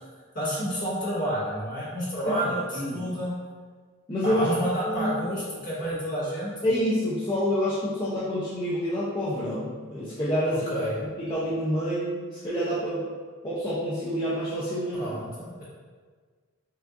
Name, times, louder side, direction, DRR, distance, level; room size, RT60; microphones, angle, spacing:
voice 1, 0.3-3.3 4.2-6.5 10.5-11.0 14.9-15.7, equal, 40° left, -8 dB, 1.5 m, -30 dB
voice 2, 4.1-4.5 4.9-5.4 6.6-10.7 11.0-13.0 13.4-15.2, equal, 20° left, -9 dB, 0.5 m, -28 dB
5.7 x 2.4 x 2.5 m, 1.5 s
head